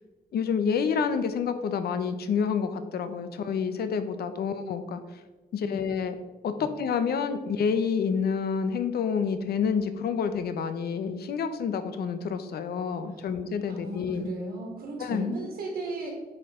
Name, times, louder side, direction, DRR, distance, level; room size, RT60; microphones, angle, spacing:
voice 1, 0.3-5.0 5.5-6.2 6.4-14.3 15.0-15.3, left 6 dB, 80° left, 10 dB, 0.7 m, -28 dB
voice 2, 13.7-16.1, right 2 dB, 75° right, -1 dB, 1.8 m, -35 dB
9.6 x 4.7 x 3.7 m, 1.2 s
wide cardioid pair, 170°, 16 cm